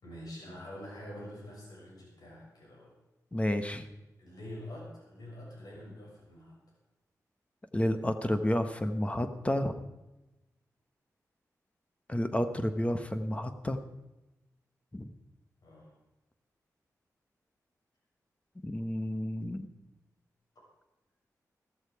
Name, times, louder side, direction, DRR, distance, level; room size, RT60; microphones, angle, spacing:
voice 1, 0.0-2.9 4.2-6.6 15.6-15.9, left 1 dB, 80° left, -3 dB, 6.7 m, -46 dB
voice 2, 3.3-3.8 7.7-9.8 12.1-13.8 14.9-15.1 18.6-19.7, left 1 dB, 20° left, 8 dB, 1.1 m, -30 dB
14.5 x 14.0 x 4.8 m, 1.0 s
cardioid pair, 70°, 7 cm